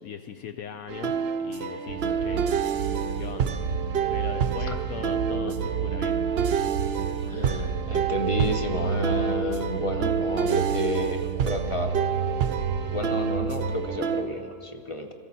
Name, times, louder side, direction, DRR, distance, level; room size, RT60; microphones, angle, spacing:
voice 1, 0.0-2.5 3.2-3.6 4.1-6.2, left 8 dB, 75° left, 7 dB, 1.0 m, -39 dB
sound 1, 0.9-14.2, right 7 dB, 60° right, 0.7 m, -29 dB
sound 2, 1.9-14.0, right 7 dB, 80° right, 1.1 m, -31 dB
voice 2, 2.0-2.4 4.7-4.8 7.3-12.0 12.9-15.1, left 1 dB, 45° left, 4 dB, 0.4 m, -31 dB
22.0 x 14.0 x 4.1 m, 2.4 s
omnidirectional pair, 1.6 m